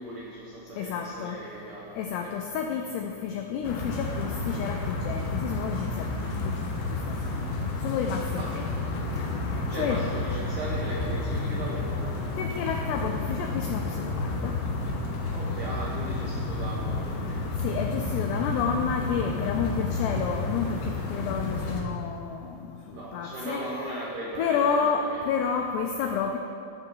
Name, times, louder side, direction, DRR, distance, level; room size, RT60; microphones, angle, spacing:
voice 1, 0.0-2.4 8.4-9.1 9.5-12.0 15.3-17.5 22.9-25.3, right 1 dB, 85° right, -4 dB, 1.8 m, -38 dB
voice 2, 0.8-1.4 2.0-6.6 7.1-8.6 9.1-10.0 12.4-14.6 17.6-23.6 24.4-26.4, left 6 dB, 85° left, 3 dB, 2.4 m, -30 dB
sound 1, 3.6-21.8, left 2 dB, 70° left, 3.2 m, -31 dB
15.5 x 7.4 x 3.9 m, 2.4 s
omnidirectional pair, 5.5 m